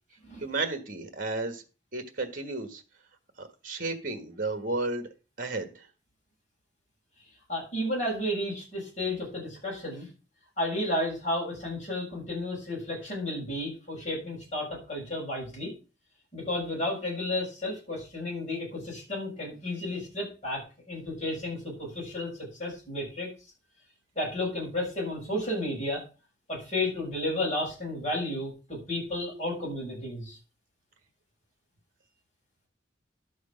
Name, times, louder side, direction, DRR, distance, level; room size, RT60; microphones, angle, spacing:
voice 1, 0.4-1.6 1.9-2.8 3.4-5.1 5.4-5.9, right 3 dB, 45° right, 8 dB, 1.5 m, -33 dB
voice 2, 7.5-10.1 10.6-15.7 16.3-20.6 20.9-22.3 22.6-23.3 24.2-26.0 26.5-30.4, left 1 dB, 40° left, -4 dB, 7.1 m, -32 dB
11.5 x 6.6 x 5.1 m, 0.32 s
head